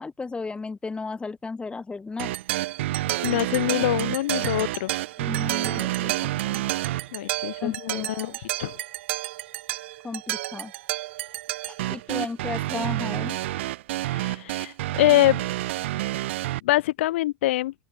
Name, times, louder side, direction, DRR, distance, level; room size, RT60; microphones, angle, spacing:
voice 1, 0.0-2.4 5.2-6.6 7.6-8.3 10.0-10.7 11.9-13.4, left 4 dB, 15° left, 2.5 m, -34 dB
sound 1, 2.2-16.6, right 16 dB, 85° right, 1.3 m, -29 dB
voice 2, 3.2-4.9 7.1-8.3 8.6-8.8 14.1-15.5 16.6-17.7, left 16 dB, 85° left, 1.9 m, -24 dB
open air
supercardioid pair, 110°, 6 cm